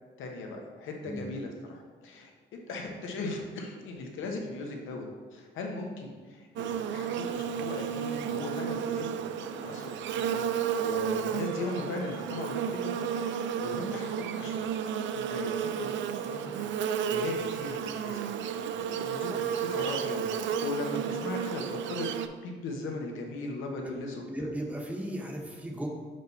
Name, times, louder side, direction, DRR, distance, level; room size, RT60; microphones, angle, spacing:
voice 1, 0.2-2.3 2.7-5.1 5.3-14.8 15.1-20.3 20.6-22.1 22.4-24.5, left 2 dB, 85° left, 1 dB, 1.1 m, -38 dB
Buzz, 6.6-22.3, right 8 dB, 70° right, 0.4 m, -32 dB
voice 2, 24.3-25.9, right 1 dB, 5° right, -1 dB, 1.0 m, -36 dB
5.5 x 5.2 x 4.0 m, 1.5 s
cardioid pair, 90°, 20 cm